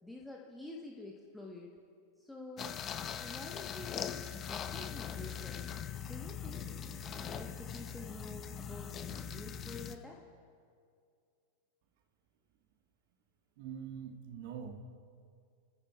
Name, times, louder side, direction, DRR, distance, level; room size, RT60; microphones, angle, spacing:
voice 1, 0.0-1.7 2.2-2.8 3.2-5.7 5.9-6.6 7.1-10.2, left 2 dB, 5° left, -1 dB, 1.1 m, -48 dB
sound 1, 2.6-9.9, left 8 dB, 25° left, 0.7 m, -41 dB
voice 2, 13.6-14.8, right 7 dB, 50° right, 5 dB, 1.4 m, -44 dB
25.5 x 14.5 x 2.3 m, 2.3 s
figure-of-eight pair, 90°, 0 cm